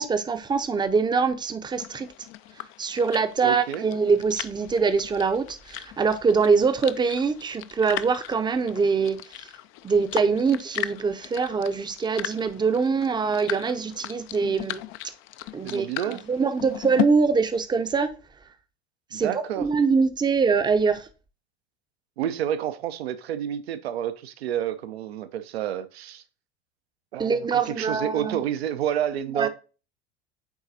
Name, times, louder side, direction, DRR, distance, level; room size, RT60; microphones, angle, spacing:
voice 1, 0.0-2.1 2.8-9.5 9.8-14.8 15.5-18.1 19.1-21.1 27.2-28.4 29.4-29.5, right 5 dB, 15° right, 0.6 m, -24 dB
sound 1, 1.8-17.0, left 16 dB, 40° left, 0.4 m, -37 dB
voice 2, 3.4-3.8 15.6-16.2 19.1-19.7 22.2-26.2 27.1-29.5, right 10 dB, 70° right, 0.7 m, -29 dB
9.3 x 3.9 x 2.7 m
figure-of-eight pair, 75°, 32 cm